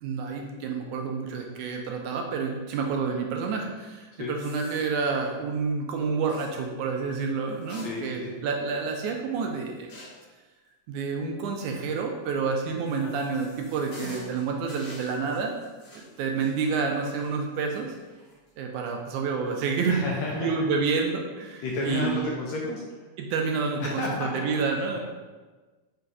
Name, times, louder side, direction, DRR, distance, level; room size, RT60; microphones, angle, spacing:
voice 1, 0.0-9.9 10.9-15.5 15.9-18.0 18.6-20.1 20.3-22.3 23.2-25.0, right 5 dB, 80° right, 2 dB, 1.9 m, -29 dB
sound 1, 4.4-5.3 6.3-6.6 7.5-8.4 8.7-8.8 9.9-10.3 12.4-18.5 18.9-19.0 19.9-20.2, left 2 dB, 55° left, 1.9 m, -48 dB
voice 2, 7.7-8.3 13.0-13.1 19.9-20.5 21.6-23.1 23.8-24.5, left 3 dB, 75° left, -2 dB, 1.7 m, -32 dB
5.7 x 3.9 x 4.6 m, 1.3 s
omnidirectional pair, 3.7 m